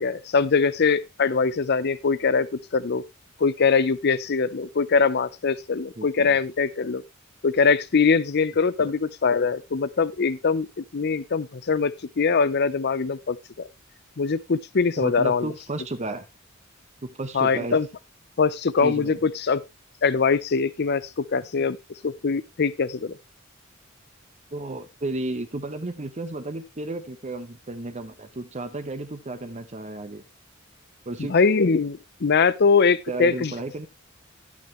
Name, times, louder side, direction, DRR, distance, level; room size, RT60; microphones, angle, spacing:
voice 1, 0.0-3.0 3.4-7.0 7.4-13.7 14.2-15.5 17.3-17.9 18.4-19.6 20.0-21.8 22.0-23.1 31.3-33.5, left 5 dB, 55° left, 0.6 m, -22 dB
voice 2, 6.0-6.4 8.8-8.9 15.0-16.3 17.0-17.8 18.8-19.2 24.5-30.2 31.1-31.3 33.1-33.9, right 2 dB, 35° right, 0.9 m, -33 dB
11.0 x 8.4 x 3.1 m
head